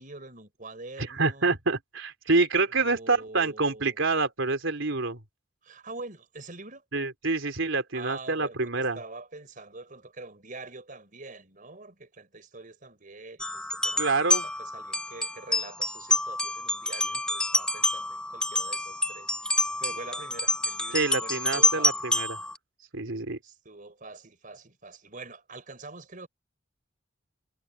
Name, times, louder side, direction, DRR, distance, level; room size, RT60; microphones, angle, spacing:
voice 1, 0.0-1.5 2.7-4.0 5.6-6.8 7.9-22.1 23.4-26.3, right 3 dB, 45° right, 5.3 m, -45 dB
voice 2, 1.0-5.2 6.9-9.0 14.0-14.4 20.9-22.4 22.9-23.4, right 3 dB, 80° right, 3.4 m, -27 dB
sound 1, 13.4-22.6, left 1 dB, 5° left, 0.5 m, -28 dB
head